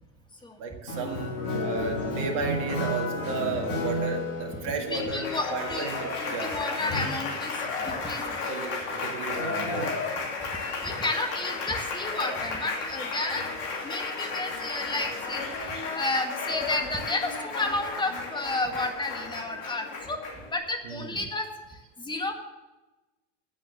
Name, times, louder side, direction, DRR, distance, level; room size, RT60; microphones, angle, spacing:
voice 1, 0.6-6.6 8.5-10.0 20.8-21.2, right 4 dB, 55° right, 2 dB, 1.9 m, -34 dB
Applause, 0.9-20.5, left 3 dB, 60° left, 2.8 m, -33 dB
voice 2, 4.9-5.9 6.2-8.5 10.8-13.5 13.8-20.2 20.5-22.3, left 2 dB, 10° left, 4 dB, 1.7 m, -32 dB
9.2 x 7.5 x 8.1 m, 1.1 s
hypercardioid pair, 85°, 37 cm